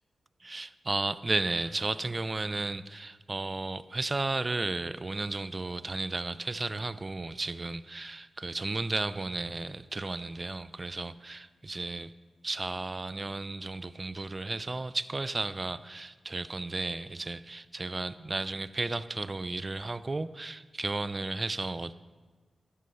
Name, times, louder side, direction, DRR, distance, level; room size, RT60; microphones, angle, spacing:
voice 1, 0.4-12.1 12.4-21.9, right 2 dB, 30° right, 0.4 m, -34 dB
12.5 x 7.7 x 5.6 m
wide cardioid pair, 90°, 0 cm